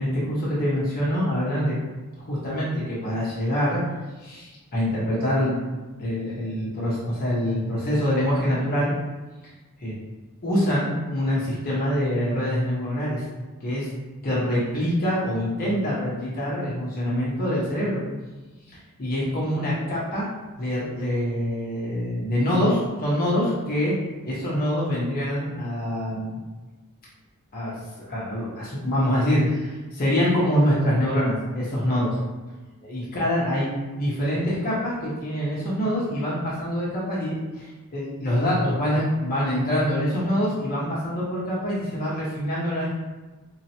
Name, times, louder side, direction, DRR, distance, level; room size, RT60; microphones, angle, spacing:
voice 1, 0.0-1.7 2.2-3.8 4.2-5.5 6.0-8.9 9.8-9.9 10.4-13.2 13.6-13.9 14.2-18.0 19.0-20.3 20.6-23.9 24.3-26.4 27.5-27.7 28.0-32.2 32.8-33.7 34.0-42.9, equal, 40° left, -7 dB, 1.0 m, -25 dB
3.9 x 2.9 x 2.8 m, 1.2 s
head